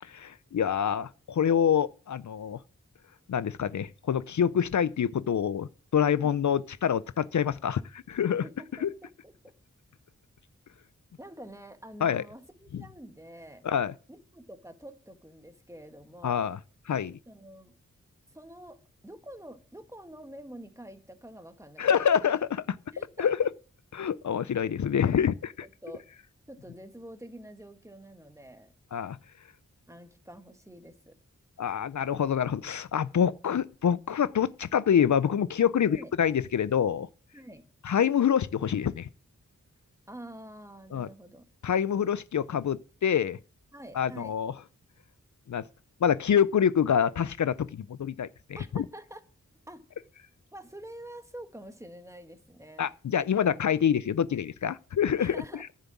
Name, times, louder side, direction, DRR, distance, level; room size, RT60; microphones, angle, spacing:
voice 1, 0.0-2.6 3.3-8.4 8.8-8.9 12.0-12.2 12.7-12.8 13.6-13.9 16.2-16.6 16.9-17.2 21.8-22.8 23.2-23.5 23.9-25.7 28.9-29.2 31.6-37.1 37.8-39.1 40.9-41.1 41.6-43.4 44.0-44.5 45.5-45.6 46.0-48.3 48.7-48.8 52.8-55.4, left 8 dB, 65° left, 0.5 m, -26 dB
voice 2, 8.4-9.5 11.2-13.6 14.1-16.6 17.3-17.7 18.3-22.0 22.9-23.3 25.6-26.0 26.5-28.7 29.9-31.2 35.9-36.1 37.3-37.6 40.1-41.4 43.7-44.3 48.6-49.2 49.7-49.8 50.5-52.9 55.2-55.6, right 1 dB, 10° right, 1.7 m, -47 dB
11.0 x 7.3 x 8.5 m
wide cardioid pair, 65°, 31 cm